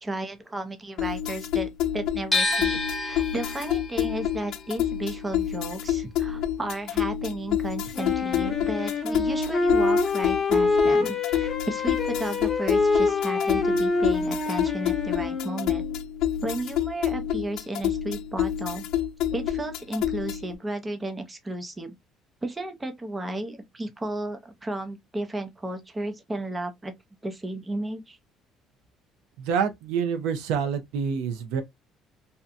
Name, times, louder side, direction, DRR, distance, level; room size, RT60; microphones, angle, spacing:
voice 1, 0.0-15.8 16.4-18.8 19.3-21.9 22.4-26.9 27.2-28.2, right 1 dB, 15° right, 0.6 m, -33 dB
sound 1, 1.0-20.5, left 11 dB, 70° left, 0.3 m, -28 dB
sound 2, 2.3-8.3 8.6-9.9, left 2 dB, 5° left, 0.9 m, -32 dB
Wind instrument woodwind instrument, 7.9-15.9, left 3 dB, 25° left, 0.7 m, -25 dB
voice 2, 29.4-31.6, right 6 dB, 90° right, 0.6 m, -27 dB
2.7 x 2.2 x 2.5 m
cardioid pair, 125°, 0 cm